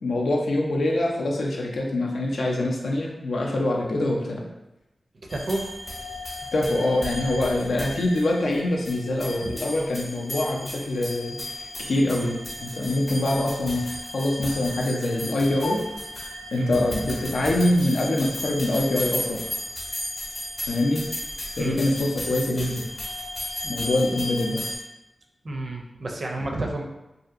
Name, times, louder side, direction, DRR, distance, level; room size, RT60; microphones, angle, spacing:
voice 1, 0.0-4.4 6.5-15.8 16.5-19.4 20.7-21.0 21.6-22.8 23.6-24.8, left 1 dB, 85° left, -1 dB, 0.5 m, -24 dB
sound 1, 5.3-24.8, left 1 dB, 40° left, 0.7 m, -35 dB
voice 2, 5.3-5.7 9.4-9.5 12.2-12.3 16.6-16.7 21.6-21.8 25.4-26.8, right 2 dB, 50° right, 0 dB, 0.4 m, -30 dB
2.7 x 2.5 x 2.4 m, 0.94 s
wide cardioid pair, 125°, 0 cm